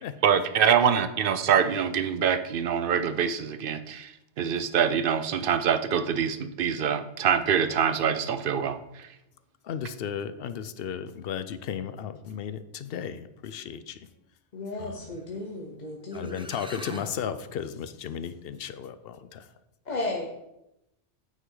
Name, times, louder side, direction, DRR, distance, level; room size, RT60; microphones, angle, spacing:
voice 1, 0.2-4.1 4.4-8.8, right 7 dB, 60° right, 11 dB, 0.6 m, -24 dB
voice 2, 9.6-14.0 14.8-14.9 16.1-19.5, left 8 dB, 65° left, 12 dB, 0.7 m, -35 dB
voice 3, 14.5-16.3 19.8-20.3, left 2 dB, 40° left, 0 dB, 1.0 m, -34 dB
sound 1, 15.8-15.9 16.1-17.2, equal, 5° right, 0.4 m, -42 dB
9.2 x 5.6 x 3.8 m, 0.87 s
omnidirectional pair, 1.2 m